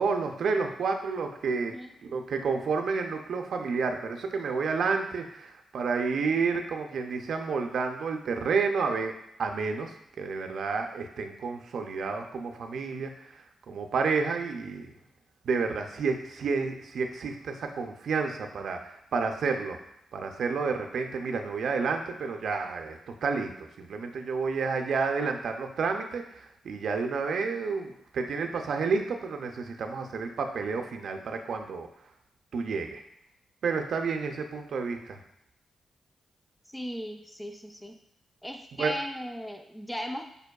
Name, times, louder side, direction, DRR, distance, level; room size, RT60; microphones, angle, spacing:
voice 1, 0.0-1.7 2.1-9.1 9.4-13.1 13.7-14.9 15.4-19.8 20.1-31.9 32.5-33.0 33.6-35.2 38.8-38.9, right 4 dB, 75° right, 4 dB, 0.4 m, -30 dB
voice 2, 36.7-38.0 38.4-40.3, equal, 5° left, 5 dB, 0.4 m, -37 dB
5.2 x 2.2 x 2.2 m, 0.78 s
supercardioid pair, 50°, 0 cm